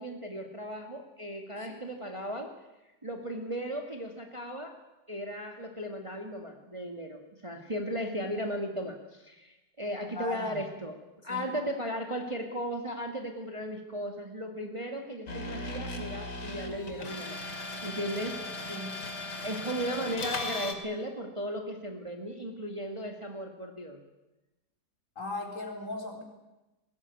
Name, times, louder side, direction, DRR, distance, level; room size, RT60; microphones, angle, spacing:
voice 1, 0.0-2.5 3.0-4.7 5.1-11.0 11.2-17.4 17.8-18.7 19.4-24.0, equal, 15° right, 4 dB, 2.0 m, -36 dB
voice 2, 10.0-10.6 11.3-11.4 18.7-19.1 20.0-20.1 25.2-26.2, left 2 dB, 45° left, 3 dB, 4.4 m, -38 dB
sound 1, 15.3-20.7, left 2 dB, 70° left, 3.1 m, -37 dB
21.0 x 18.0 x 9.7 m, 1.0 s
omnidirectional pair, 1.9 m